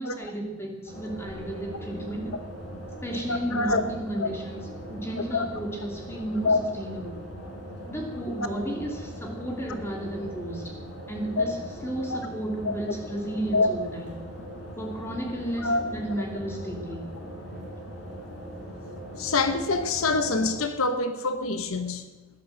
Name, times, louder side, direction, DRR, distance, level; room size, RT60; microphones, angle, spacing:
voice 1, 0.0-2.4 3.0-7.2 7.9-10.7 11.1-14.1 14.8-17.0, right 1 dB, 10° left, 0 dB, 2.7 m, -33 dB
sound 1, 0.9-20.7, equal, 55° left, 4.3 m, -40 dB
voice 2, 3.3-3.8 4.2-4.3 5.3-5.5 6.4-6.6 11.4-11.5 12.1-12.2 12.6-12.7 13.5-13.7 15.6-15.8 19.2-22.1, left 3 dB, 75° left, 9 dB, 1.0 m, -25 dB
16.0 x 11.0 x 7.8 m, 1.2 s
head